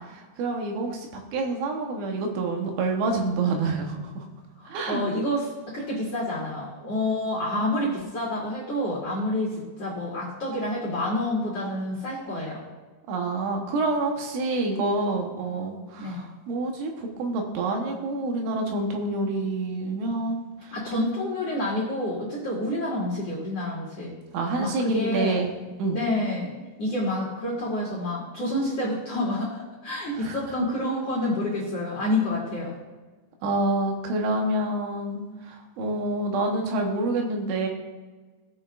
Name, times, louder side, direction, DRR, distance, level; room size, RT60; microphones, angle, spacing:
voice 1, 0.0-4.3 4.6-5.0 13.1-20.8 24.3-25.5 25.8-26.0 30.2-30.4 33.4-37.7, right 2 dB, 80° right, 2 dB, 3.5 m, -27 dB
voice 2, 4.6-12.6 16.0-16.2 20.7-24.1 24.6-25.4 25.9-26.5 26.8-29.5 29.8-32.7, left 1 dB, 50° left, -5 dB, 2.1 m, -28 dB
18.5 x 6.8 x 2.5 m, 1.3 s
omnidirectional pair, 5.6 m